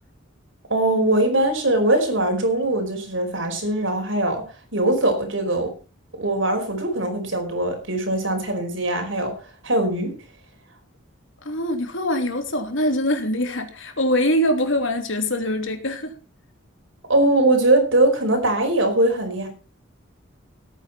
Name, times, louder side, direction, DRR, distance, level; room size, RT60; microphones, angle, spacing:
voice 1, 0.7-4.5 4.7-5.7 6.2-9.3 9.6-10.1 17.1-19.5, right 1 dB, 70° right, 4 dB, 5.1 m, -21 dB
voice 2, 11.4-16.1, left 1 dB, 70° left, 6 dB, 3.1 m, -23 dB
18.0 x 9.4 x 4.4 m, 0.35 s
head